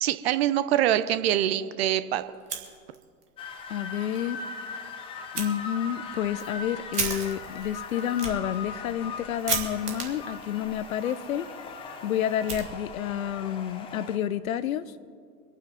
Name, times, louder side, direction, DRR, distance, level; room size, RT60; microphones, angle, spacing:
voice 1, 0.0-2.2, right 12 dB, 40° right, 0.7 m, -24 dB
Fire, 2.3-3.3 3.6-3.7 4.1-4.2 5.3-5.5 6.1-13.2, right 5 dB, 75° right, 2.4 m, -36 dB
sound 1, 3.4-14.2, left 5 dB, 10° left, 0.5 m, -40 dB
voice 2, 3.7-4.4 5.3-11.5 12.0-14.8, left 10 dB, 60° left, 0.7 m, -29 dB
25.5 x 9.2 x 3.6 m
figure-of-eight pair, 100°, 47 cm